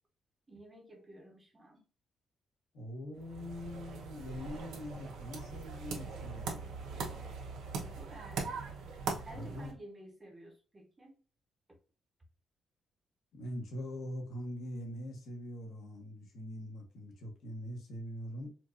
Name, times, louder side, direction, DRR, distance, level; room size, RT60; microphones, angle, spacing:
voice 1, 0.5-1.9 7.7-8.8 9.3-11.2 11.7-11.8, right 1 dB, 15° right, 2 dB, 0.7 m, -53 dB
voice 2, 2.7-6.8 9.3-9.7 13.3-18.5, equal, 60° left, 1 dB, 1.2 m, -43 dB
sound 1, 3.2-9.7, right 4 dB, 85° right, 1.1 m, -41 dB
4.4 x 2.5 x 2.4 m, 0.38 s
cardioid pair, 175°, 0 cm